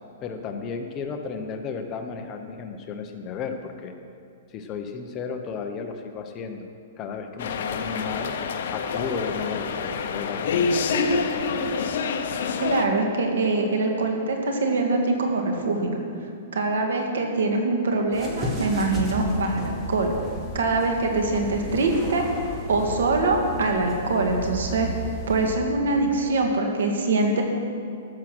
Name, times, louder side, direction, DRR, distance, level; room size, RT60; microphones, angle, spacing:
voice 1, 0.2-3.9 4.5-6.7 7.0-8.3 8.7-11.3, left 5 dB, 25° left, 5 dB, 0.9 m, -33 dB
sound 1, 7.4-12.9, left 5 dB, 60° left, 0.9 m, -27 dB
voice 2, 12.6-16.0 16.5-20.1 20.5-22.2 22.7-24.9 25.3-27.4, right 3 dB, 85° right, 3 dB, 2.0 m, -23 dB
sound 2, 18.1-25.5, equal, 10° right, 1.7 m, -34 dB
13.5 x 7.4 x 6.2 m, 2.4 s
hypercardioid pair, 160°, 0 cm